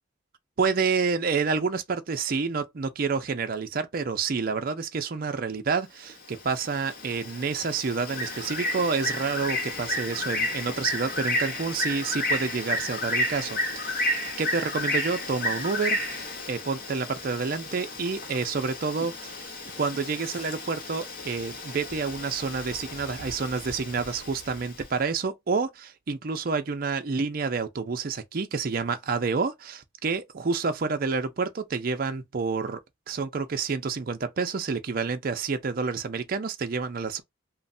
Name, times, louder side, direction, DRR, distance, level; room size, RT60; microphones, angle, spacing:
voice 1, 0.6-14.1 14.4-16.2 16.5-19.5 19.8-32.8 33.1-37.2, right 4 dB, 50° right, 0.5 m, -29 dB
Bird, 6.1-24.8, left 1 dB, 45° left, 0.9 m, -32 dB
3.1 x 2.1 x 2.5 m
head